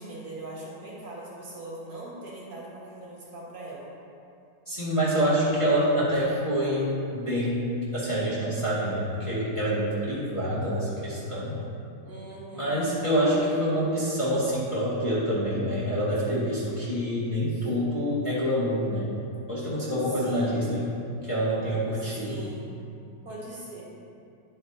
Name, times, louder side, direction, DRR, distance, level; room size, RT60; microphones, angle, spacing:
voice 1, 0.0-3.9 12.0-12.9 17.5-17.7 20.2-20.7 21.9-22.7 23.2-23.8, right 2 dB, 60° right, -7 dB, 2.3 m, -41 dB
voice 2, 4.7-11.6 12.5-19.1 19.5-20.9 21.2-22.4, equal, 20° left, -10 dB, 1.7 m, -26 dB
9.7 x 8.5 x 2.8 m, 2.5 s
omnidirectional pair, 1.9 m